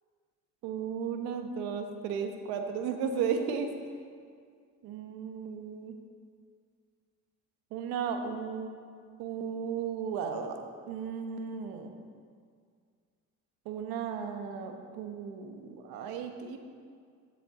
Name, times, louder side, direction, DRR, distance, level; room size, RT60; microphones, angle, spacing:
voice 1, 0.6-3.7 4.8-6.0 7.7-8.7 9.2-10.6 10.9-11.9 13.6-16.6, right 6 dB, 80° right, 5 dB, 1.3 m, -35 dB
11.5 x 10.5 x 3.9 m, 2.1 s
supercardioid pair, 85°, 36 cm